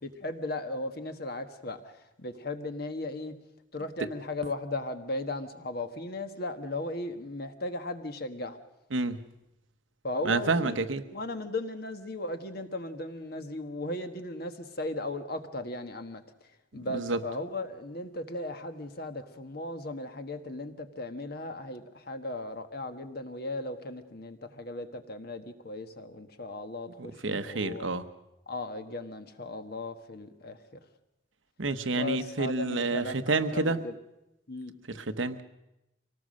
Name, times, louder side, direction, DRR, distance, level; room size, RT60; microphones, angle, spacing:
voice 1, 0.0-3.3 3.7-8.6 10.0-10.8 11.1-16.2 16.7-27.9 28.5-30.8 31.9-34.0 34.5-34.7, left 2 dB, 55° left, 8 dB, 1.5 m, -37 dB
voice 2, 8.9-9.3 10.2-11.0 16.9-17.2 27.0-28.0 31.6-33.8 34.9-35.4, right 3 dB, 80° right, 10 dB, 1.1 m, -29 dB
24.5 x 18.5 x 6.5 m, 0.89 s
head